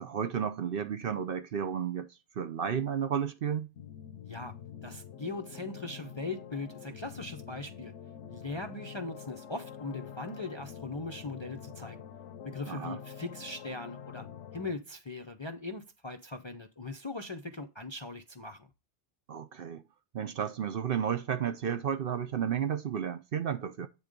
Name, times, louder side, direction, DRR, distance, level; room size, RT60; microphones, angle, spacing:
voice 1, 0.0-2.1 2.4-3.7 12.7-13.0 19.3-19.8 20.1-23.9, right 8 dB, 55° right, 0.8 m, -32 dB
sound 1, 3.7-14.7, left 8 dB, 80° left, 1.0 m, -46 dB
voice 2, 4.8-7.9 8.3-12.0 12.4-14.3 14.5-18.7, left 3 dB, 30° left, 0.5 m, -40 dB
8.5 x 3.7 x 5.1 m
omnidirectional pair, 1.2 m